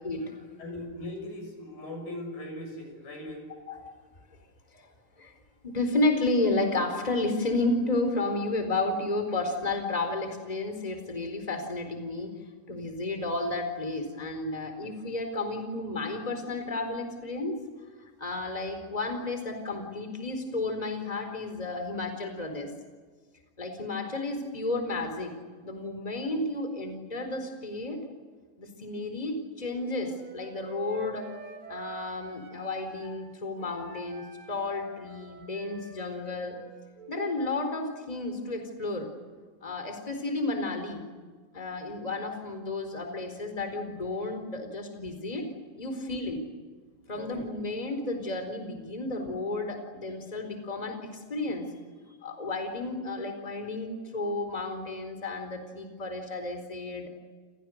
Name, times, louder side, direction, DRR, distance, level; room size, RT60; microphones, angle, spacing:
voice 1, 0.0-0.4 3.7-3.8 4.7-4.9 5.2-5.3 5.6-12.3 12.7-17.6 18.0-22.7 23.6-25.3 25.6-28.0 28.6-31.3 31.7-36.5 37.1-39.1 39.6-41.0 41.5-45.5 45.8-46.4 47.1-51.7 52.1-57.1, left 2 dB, 10° left, 6 dB, 4.1 m, -32 dB
voice 2, 0.6-3.5 47.1-47.4, left 1 dB, 85° left, 4 dB, 8.6 m, -39 dB
Wind instrument woodwind instrument, 29.7-33.2 33.6-37.3, right 3 dB, 80° right, 7.6 m, -46 dB
29.5 x 29.0 x 6.6 m, 1.5 s
omnidirectional pair, 3.9 m